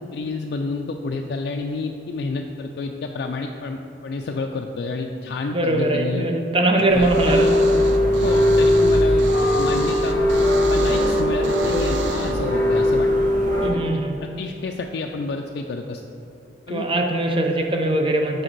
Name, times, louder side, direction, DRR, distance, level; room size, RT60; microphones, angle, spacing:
voice 1, 0.1-6.3 6.7-7.6 8.2-10.2 10.6-13.1 13.7-13.9 14.2-16.0 16.7-16.9 17.6-17.7, left 3 dB, 60° left, 2 dB, 0.3 m, -29 dB
voice 2, 5.5-7.5 13.6-14.1 16.7-18.4, right 2 dB, 30° right, 2 dB, 0.6 m, -21 dB
sound 1, 6.8-12.3, right 5 dB, 75° right, 0.5 m, -36 dB
sound 2, 6.9-13.7, left 1 dB, 45° right, 1.3 m, -19 dB
6.4 x 4.9 x 4.5 m, 2.8 s
head